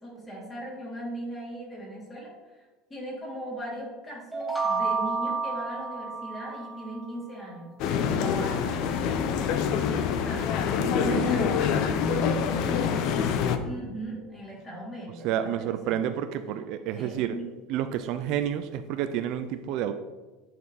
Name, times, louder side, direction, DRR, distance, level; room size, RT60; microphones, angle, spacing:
voice 1, 0.0-2.6 2.9-7.7 8.2-9.3 10.2-10.6 11.0-16.0 16.9-17.5, right 1 dB, 15° left, -4 dB, 2.6 m, -39 dB
sound 1, 4.3-7.1, right 4 dB, 5° right, 0.8 m, -30 dB
sound 2, 7.8-13.6, left 7 dB, 50° left, 0.6 m, -26 dB
voice 2, 10.8-11.5 15.2-17.4 17.7-19.9, right 10 dB, 55° right, 9 dB, 0.4 m, -30 dB
10.0 x 4.4 x 4.1 m, 1.2 s
cardioid pair, 155°, 0 cm